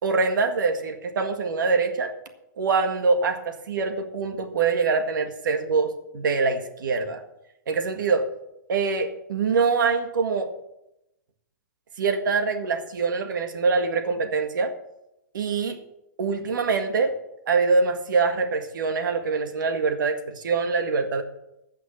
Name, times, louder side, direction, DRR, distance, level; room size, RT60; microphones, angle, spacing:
voice 1, 0.0-2.1 2.6-7.2 7.7-8.3 8.7-10.5 12.0-14.7 15.3-15.8 16.2-17.1 17.5-21.2, right 4 dB, 90° right, 7 dB, 1.9 m, -24 dB
15.5 x 5.9 x 7.3 m, 0.87 s
hypercardioid pair, 175°, 10 cm